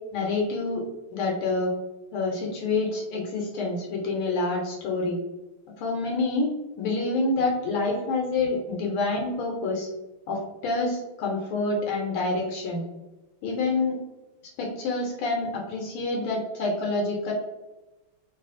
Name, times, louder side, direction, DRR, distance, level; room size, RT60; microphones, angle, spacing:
voice 1, 0.1-0.8 1.1-1.7 2.1-5.2 5.8-6.5 6.8-9.9 10.3-12.8 13.4-14.0 14.6-17.3, left 3 dB, 75° left, -1 dB, 1.4 m, -27 dB
3.3 x 2.7 x 2.4 m, 1.1 s
omnidirectional pair, 2.4 m